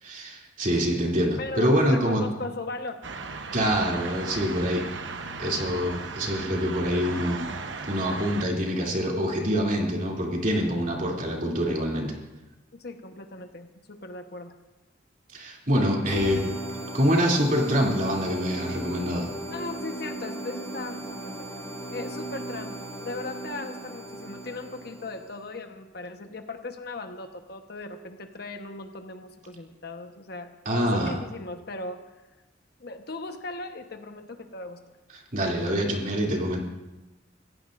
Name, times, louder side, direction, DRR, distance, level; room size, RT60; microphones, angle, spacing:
voice 1, 0.0-2.3 3.5-4.8 5.4-7.4 7.9-12.1 15.3-16.4 16.9-19.3 30.6-31.2 35.1-36.6, equal, 45° right, -2 dB, 2.9 m, -25 dB
voice 2, 1.4-3.0 12.7-14.5 19.5-21.5 21.9-32.0 32.8-34.8, left 2 dB, 55° left, 6 dB, 1.2 m, -38 dB
sound 1, 3.0-8.5, right 4 dB, 80° right, 1.0 m, -36 dB
sound 2, 16.1-25.4, right 1 dB, 15° left, 2.9 m, -37 dB
26.5 x 16.0 x 2.6 m, 1.1 s
head